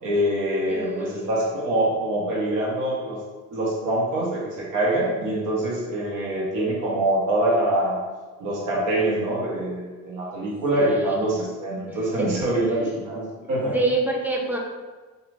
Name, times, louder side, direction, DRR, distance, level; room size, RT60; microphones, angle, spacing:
voice 1, 0.0-3.2 3.5-8.0 8.4-13.7, right 1 dB, 90° right, -4 dB, 0.9 m, -24 dB
voice 2, 0.7-1.3 10.7-11.3 11.9-12.9 13.4-14.6, right 2 dB, 5° right, -1 dB, 0.5 m, -28 dB
2.5 x 2.4 x 3.1 m, 1.3 s
cardioid pair, 90°, 30 cm